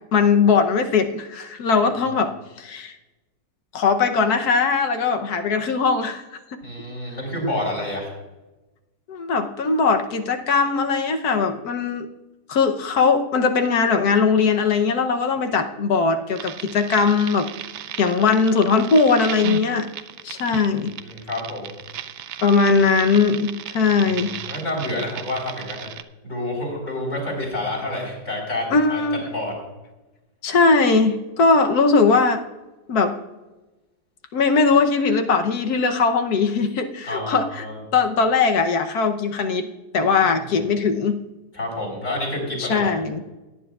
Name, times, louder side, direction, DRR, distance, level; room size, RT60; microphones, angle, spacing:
voice 1, 0.1-2.3 2.6-2.9 3.7-6.2 9.1-12.1 12.5-17.5 18.0-19.9 20.2-21.0 22.4-24.4 28.7-29.2 30.4-32.4 32.9-33.1 34.3-37.6 37.9-39.7 39.9-41.2 42.6-43.2, left 4 dB, 65° left, 6 dB, 1.4 m, -20 dB
voice 2, 6.6-8.1 20.9-21.8 24.4-25.9 26.2-29.0 29.3-29.5 37.1-37.8 40.2-40.3 41.5-42.9, left 1 dB, 45° left, -2 dB, 4.7 m, -28 dB
sound 1, 16.3-26.0, right 10 dB, 90° right, 0.6 m, -35 dB
18.0 x 9.8 x 2.4 m, 1.1 s
omnidirectional pair, 1.8 m